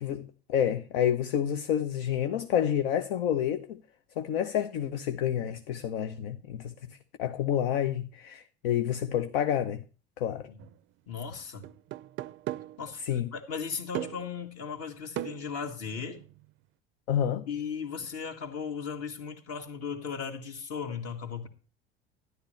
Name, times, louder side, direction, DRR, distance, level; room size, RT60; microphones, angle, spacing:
voice 1, 0.0-3.8 4.2-9.8 10.2-10.5 13.0-13.3 17.1-17.4, left 9 dB, 70° left, 0.8 m, -29 dB
sound 1, 10.6-10.7 11.6-12.9 13.9-14.4 15.2-16.5, right 15 dB, 40° right, 0.5 m, -38 dB
voice 2, 11.1-11.7 12.8-16.2 17.5-21.5, left 6 dB, 50° left, 2.0 m, -37 dB
12.5 x 10.5 x 3.2 m
hypercardioid pair, 75°, 30 cm